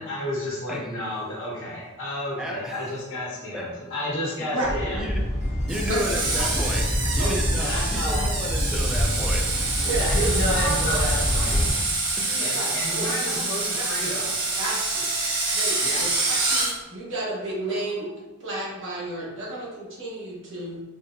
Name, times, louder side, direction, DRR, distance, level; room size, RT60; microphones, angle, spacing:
voice 1, 0.0-5.0 7.6-8.3 9.8-11.6 12.4-14.4 15.8-16.0, left 1 dB, 60° left, -6 dB, 1.3 m, -31 dB
voice 2, 2.4-2.8 3.5-3.7 4.6-5.2 5.7-9.6 12.2-12.5, equal, ahead, -2 dB, 0.4 m, -33 dB
sound 1, 4.6-11.7, equal, 30° left, 0.7 m, -26 dB
Screech, 5.7-16.7, right 3 dB, 90° right, 1.0 m, -27 dB
voice 3, 9.8-10.9 12.5-13.1 13.5-14.1 14.6-15.1 15.5-18.1 18.4-20.8, right 2 dB, 60° right, -6 dB, 1.1 m, -32 dB
5.1 x 2.1 x 2.5 m, 1.1 s
head